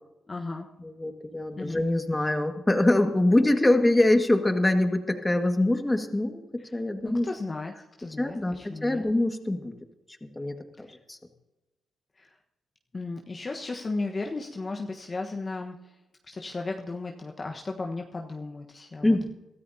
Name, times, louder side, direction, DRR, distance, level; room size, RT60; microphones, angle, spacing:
voice 1, 0.3-0.7 1.6-1.8 7.0-9.1 12.2-12.3 12.9-16.0 16.2-19.3, left 3 dB, 40° left, 1 dB, 1.3 m, -35 dB
voice 2, 0.8-6.4 6.7-7.3 8.2-9.8 10.4-11.2 19.0-19.3, left 1 dB, 20° left, 5 dB, 1.9 m, -24 dB
22.5 x 13.5 x 2.8 m, 1.0 s
supercardioid pair, 60°, 0 cm